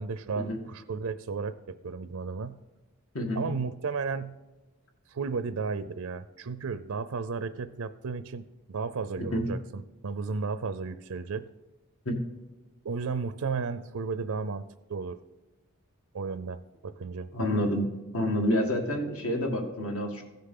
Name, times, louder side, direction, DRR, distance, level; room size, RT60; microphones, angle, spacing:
voice 1, 0.0-2.6 3.3-4.4 5.1-11.5 12.8-14.6 14.9-15.2 16.1-17.3, right 5 dB, 75° right, 13 dB, 0.5 m, -34 dB
voice 2, 3.1-3.5 9.3-9.5 12.1-12.2 17.3-20.2, equal, 75° left, 3 dB, 1.8 m, -28 dB
15.5 x 6.7 x 3.8 m, 1.1 s
head